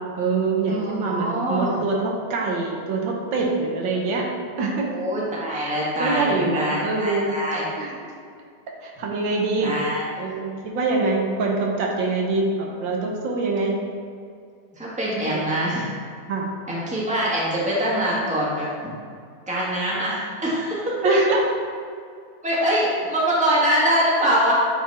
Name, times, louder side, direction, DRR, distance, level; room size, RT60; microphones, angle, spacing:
voice 1, 0.2-4.3 4.6-4.9 5.5-7.4 7.8-7.9 8.8-9.7 10.2-13.7 15.2-15.4 16.3-16.5 21.0-21.4, right 3 dB, 80° right, -1 dB, 1.7 m, -24 dB
voice 2, 0.7-1.8 4.8-7.6 9.6-10.1 14.7-15.9 16.7-18.7 19.5-20.8 22.4-24.5, right 1 dB, 5° right, -6 dB, 1.3 m, -24 dB
9.0 x 4.1 x 4.2 m, 2.3 s
omnidirectional pair, 2.0 m